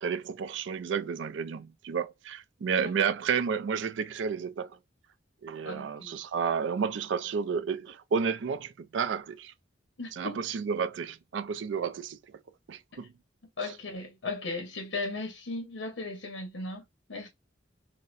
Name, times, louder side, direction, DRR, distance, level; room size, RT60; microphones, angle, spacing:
voice 1, 0.0-4.8 5.4-9.5 10.1-12.4 12.7-13.1 13.6-13.8, right 6 dB, 70° right, 0.4 m, -31 dB
voice 2, 5.6-6.1 10.0-10.3 12.9-13.0 13.6-16.8 17.1-17.3, left 3 dB, 90° left, 0.9 m, -36 dB
4.0 x 2.1 x 2.4 m
head